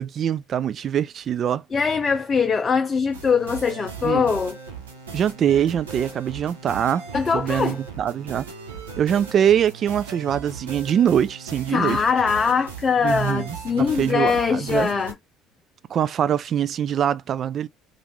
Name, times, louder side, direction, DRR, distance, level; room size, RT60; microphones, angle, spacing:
voice 1, 0.0-1.6 4.0-4.3 5.1-7.0 7.3-8.5 9.0-12.0 13.0-14.9 15.9-17.7, right 9 dB, 50° right, 0.3 m, -23 dB
voice 2, 1.7-4.6 7.1-7.8 11.7-15.2, left 5 dB, 30° left, 0.5 m, -22 dB
sound 1, 3.1-15.1, right 6 dB, 90° right, 0.9 m, -38 dB
3.5 x 2.4 x 3.0 m
hypercardioid pair, 65°, 0 cm